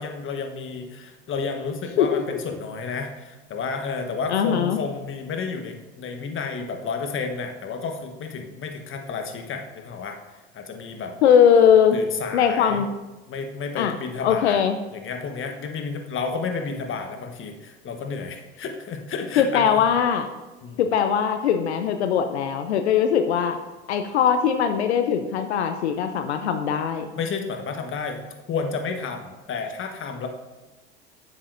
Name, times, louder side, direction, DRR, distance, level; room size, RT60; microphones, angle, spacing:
voice 1, 0.0-10.2 10.5-11.1 11.9-12.9 13.3-14.6 14.9-19.8 20.6-20.8 27.1-30.3, left 5 dB, 40° left, 5 dB, 1.2 m, -31 dB
voice 2, 4.3-4.8 11.2-12.0 12.3-12.9 13.8-13.9 14.2-14.8 19.4-20.3 20.8-23.6 23.9-27.1, left 8 dB, 85° left, 8 dB, 0.5 m, -20 dB
10.5 x 7.4 x 2.6 m, 1.1 s
hypercardioid pair, 75°, 32 cm